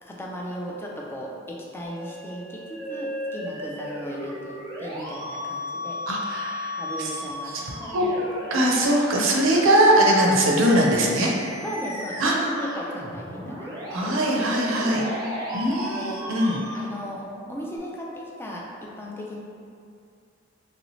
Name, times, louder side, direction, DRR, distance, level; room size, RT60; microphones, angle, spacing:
voice 1, 0.0-6.0 6.3-6.4 6.8-8.3 10.5-10.7 11.6-14.3 15.0-15.1 15.7-16.2 16.7-19.4, equal, 10° left, -3 dB, 0.3 m, -36 dB
Musical instrument, 1.8-17.8, equal, 20° right, 0.8 m, -35 dB
voice 2, 6.1-7.1 7.6-8.0 8.5-11.3 12.2-12.4 13.9-15.0 15.5-16.6, right 1 dB, 80° right, -1 dB, 0.5 m, -21 dB
3.1 x 2.7 x 3.0 m, 2.4 s
head